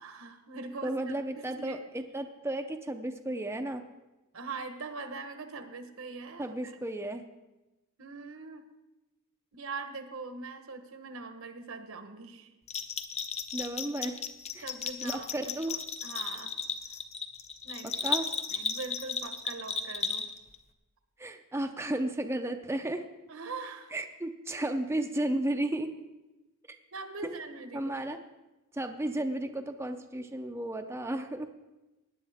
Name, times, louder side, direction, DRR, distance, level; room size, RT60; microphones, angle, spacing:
voice 1, 0.0-1.8 4.3-6.7 8.0-8.7 9.5-12.5 13.6-13.7 14.6-15.5 16.0-16.6 17.6-18.0 18.5-20.3 23.3-24.0 24.5-24.7 26.9-27.9, right 4 dB, 75° right, 7 dB, 1.2 m, -42 dB
voice 2, 0.8-3.8 6.4-7.3 13.5-14.2 14.5-14.7 15.0-15.8 18.0-18.3 21.2-23.0 23.9-25.9 27.2-27.3 27.7-28.2 28.7-31.5, right 1 dB, 10° right, 5 dB, 0.5 m, -33 dB
Bell, 12.7-20.6, left 5 dB, 30° left, 0.7 m, -35 dB
18.0 x 9.9 x 3.5 m, 1.1 s
head